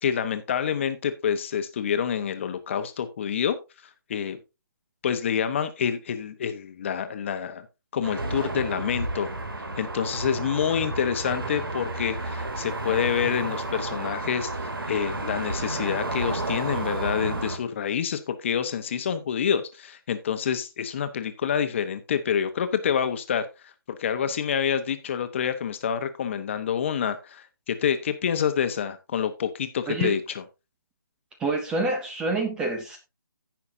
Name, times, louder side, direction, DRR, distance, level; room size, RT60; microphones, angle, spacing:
voice 1, 0.0-3.6 4.1-4.4 5.0-7.7 7.9-9.3 9.8-14.5 14.9-23.7 24.0-30.4, left 8 dB, 30° left, 1.1 m, -27 dB
sound 1, 8.0-17.6, right 2 dB, 75° right, 2.8 m, -31 dB
voice 2, 31.4-33.0, right 3 dB, 5° right, 0.6 m, -27 dB
16.5 x 5.9 x 2.7 m
figure-of-eight pair, 155°, 12 cm